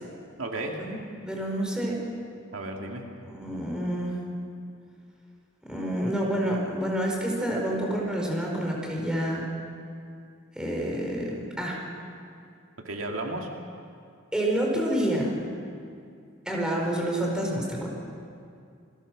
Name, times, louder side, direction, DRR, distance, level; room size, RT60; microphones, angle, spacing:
voice 1, 0.4-0.8 2.5-3.1 12.8-13.5, right 2 dB, 75° right, 1 dB, 2.4 m, -33 dB
voice 2, 1.3-2.0 3.2-4.2 5.7-9.4 10.5-11.8 14.3-15.3 16.4-17.9, right 1 dB, 5° right, -1 dB, 4.7 m, -28 dB
28.0 x 21.5 x 6.3 m, 2.4 s
head